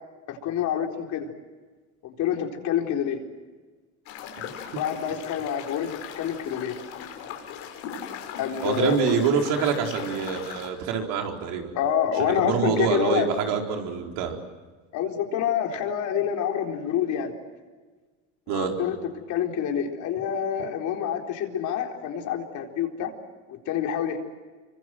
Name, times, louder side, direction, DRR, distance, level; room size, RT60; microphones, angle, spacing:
voice 1, 0.3-1.3 2.0-3.2 4.8-6.8 8.4-8.9 11.7-13.3 14.9-17.3 18.5-19.0 19.3-23.1 23.5-24.2, left 9 dB, 60° left, 2 dB, 4.1 m, -27 dB
sound 1, 4.1-10.7, left 8 dB, 75° left, 5.4 m, -38 dB
voice 2, 8.6-11.7 12.2-14.4 18.5-18.7, right 6 dB, 70° right, 2 dB, 4.6 m, -26 dB
26.0 x 24.5 x 7.8 m, 1.4 s
supercardioid pair, 95°, 34 cm